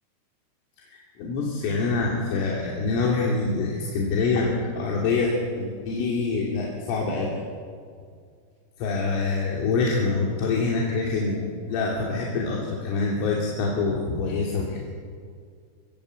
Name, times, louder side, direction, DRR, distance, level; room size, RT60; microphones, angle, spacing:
voice 1, 0.8-7.4 8.8-14.9, left 3 dB, 85° left, -2 dB, 5.5 m, -25 dB
23.5 x 20.0 x 8.3 m, 2.1 s
omnidirectional pair, 5.6 m